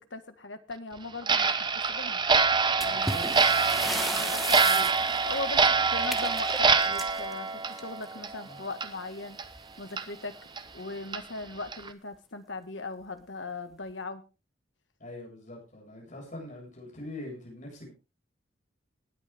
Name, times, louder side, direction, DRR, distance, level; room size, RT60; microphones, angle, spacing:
voice 1, 0.1-2.2 2.8-3.2 3.9-4.9 5.2-9.4 9.8-10.3 10.7-14.2, left 3 dB, 65° left, 9 dB, 1.8 m, -39 dB
Clock, 1.2-8.5 8.8-8.9 9.4-9.5 10.0-10.1 10.6-10.7 11.1-11.2 11.7-11.9, right 4 dB, 25° right, 0.9 m, -25 dB
sound 1, 2.8-8.2 9.4-9.6 9.9-10.0 10.7-10.8 11.4-11.7, equal, ahead, 1.3 m, -36 dB
voice 2, 2.9-4.7 8.4-8.6 15.0-17.9, left 1 dB, 40° left, -1 dB, 8.0 m, -44 dB
19.5 x 9.1 x 3.6 m, 0.29 s
head